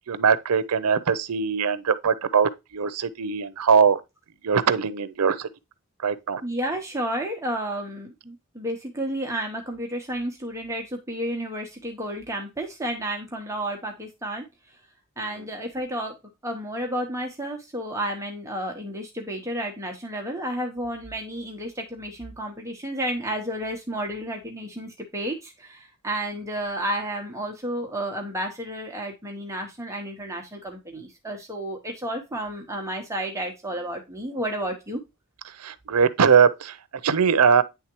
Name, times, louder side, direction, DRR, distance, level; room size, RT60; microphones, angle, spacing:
voice 1, 0.1-4.0 4.4-5.5 6.0-6.4 35.6-36.8 37.0-37.6, right 6 dB, 85° right, 0.6 m, -21 dB
voice 2, 6.4-14.5 15.2-16.2 16.4-35.0, right 1 dB, 15° right, 0.9 m, -31 dB
9.5 x 3.5 x 2.9 m
head